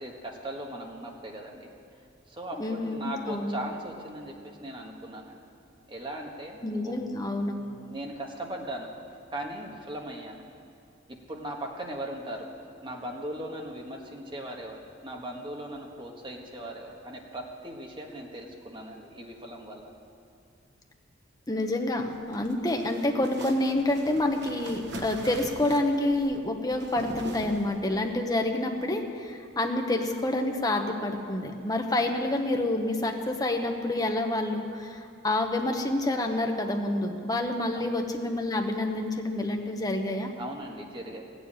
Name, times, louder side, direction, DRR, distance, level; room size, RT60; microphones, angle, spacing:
voice 1, 0.0-1.7 2.3-5.4 5.9-6.9 7.6-8.9 9.3-10.5 11.1-12.5 12.8-19.9 37.7-38.0 40.4-41.3, right 1 dB, 25° right, 1 dB, 1.5 m, -39 dB
voice 2, 2.6-3.6 6.6-7.6 21.5-40.3, left 1 dB, 20° left, 3 dB, 1.0 m, -28 dB
sound 1, 22.1-28.1, right 1 dB, 65° right, 1.3 m, -42 dB
15.0 x 7.2 x 8.8 m, 2.4 s
head